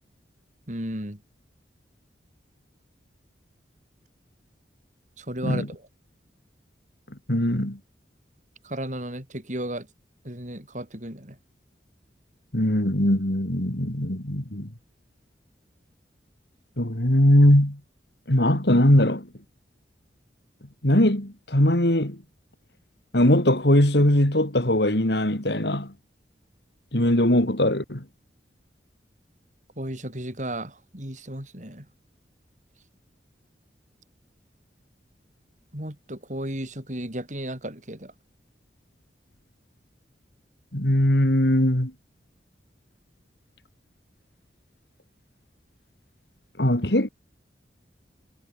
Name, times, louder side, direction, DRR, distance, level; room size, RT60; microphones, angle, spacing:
voice 1, 0.7-1.2 5.2-5.8 8.6-9.9 10.2-11.4 29.8-31.9 35.7-38.1, right 1 dB, 45° right, 7.1 m, -34 dB
voice 2, 7.3-7.8 12.5-14.7 16.8-17.8 18.3-19.3 20.8-22.2 23.1-25.9 26.9-28.0 40.7-41.9 46.6-47.1, left 1 dB, 70° left, 3.8 m, -20 dB
head